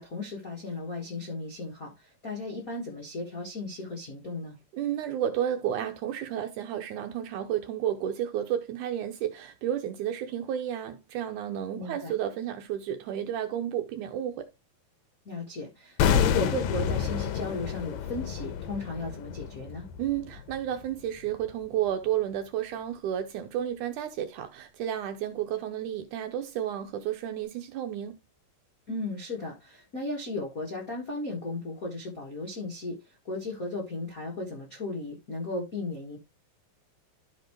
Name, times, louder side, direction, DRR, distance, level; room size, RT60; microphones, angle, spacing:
voice 1, 0.0-4.6 11.7-12.1 15.2-19.9 28.9-36.2, left 2 dB, 55° left, 0.9 m, -35 dB
voice 2, 4.7-14.5 20.0-28.2, right 10 dB, 75° right, 1.9 m, -32 dB
sound 1, 16.0-21.0 21.3-21.4, left 8 dB, 80° left, 2.5 m, -29 dB
12.5 x 4.5 x 3.0 m
omnidirectional pair, 4.1 m